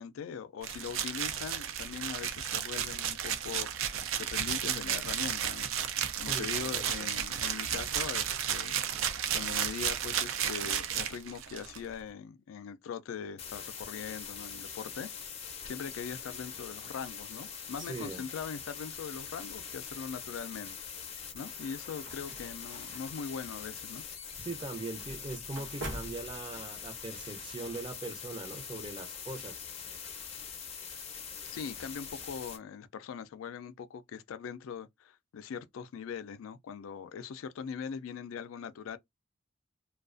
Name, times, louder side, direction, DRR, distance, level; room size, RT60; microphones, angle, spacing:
voice 1, 0.0-4.0 4.3-5.7 6.2-8.8 9.3-15.1 15.6-20.8 21.3-24.0 31.5-39.0, left 6 dB, 90° left, 0.3 m, -41 dB
sound 1, 0.6-11.8, right 9 dB, 85° right, 0.4 m, -33 dB
voice 2, 6.2-6.9 17.8-18.2 24.4-29.6, right 3 dB, 25° right, 0.5 m, -41 dB
sound 2, 13.4-32.6, left 7 dB, 30° left, 0.5 m, -43 dB
sound 3, 21.7-26.9, right 1 dB, 70° right, 0.9 m, -46 dB
2.4 x 2.2 x 2.4 m
head